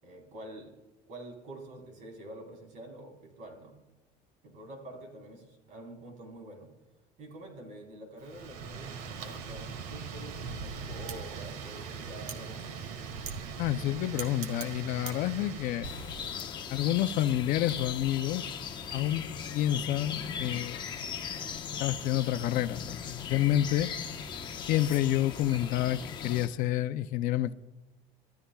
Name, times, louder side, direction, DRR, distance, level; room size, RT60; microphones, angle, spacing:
voice 1, 0.0-0.8 1.1-3.7 4.4-6.7 7.2-12.8, right 1 dB, 55° right, 4.1 m, -47 dB
Wind, 8.2-16.4, right 5 dB, 75° right, 1.6 m, -40 dB
voice 2, 13.6-15.9 16.7-18.5 18.9-19.2 19.5-20.8 21.8-23.9 24.7-27.5, left 13 dB, 60° left, 0.6 m, -29 dB
sound 1, 15.8-26.5, left 7 dB, 30° left, 1.0 m, -38 dB
24.0 x 14.0 x 2.3 m
cardioid pair, 170°, 16 cm